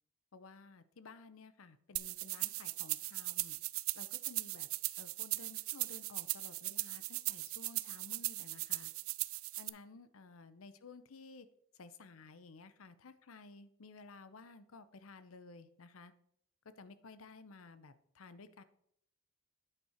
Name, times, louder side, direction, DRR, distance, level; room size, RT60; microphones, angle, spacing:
voice 1, 0.3-3.6 3.9-4.7 5.0-8.9 9.6-11.5 11.8-16.1 16.8-18.6, left 4 dB, 75° left, 13 dB, 0.7 m, -55 dB
sound 1, 2.0-9.7, right 20 dB, 75° right, 0.4 m, -39 dB
9.5 x 5.4 x 5.0 m, 0.71 s
head